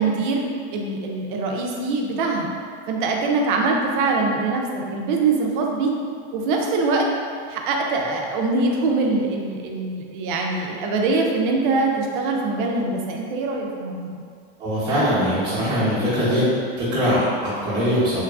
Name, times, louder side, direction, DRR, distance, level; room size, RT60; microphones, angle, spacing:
voice 1, 0.0-2.5 2.9-5.9 6.3-7.1 7.5-14.2, right 3 dB, 60° right, 0 dB, 0.4 m, -23 dB
voice 2, 14.6-16.4 16.8-18.2, equal, 15° right, -13 dB, 0.8 m, -21 dB
3.0 x 2.3 x 2.3 m, 2.2 s
supercardioid pair, 155°, 30 cm